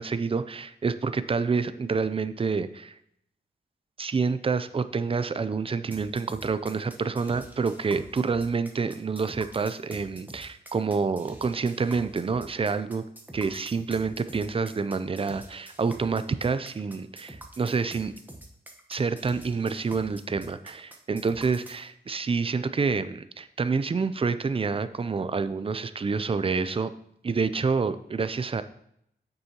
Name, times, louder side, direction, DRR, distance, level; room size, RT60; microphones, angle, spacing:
voice 1, 0.0-2.9 4.0-13.0 13.3-18.1 18.9-26.9 27.2-28.6, right 5 dB, 30° right, 13 dB, 0.5 m, -28 dB
sound 1, 5.9-21.8, right 1 dB, 10° right, 1.1 m, -46 dB
9.2 x 6.8 x 2.9 m, 0.74 s
cardioid pair, 80°, 19 cm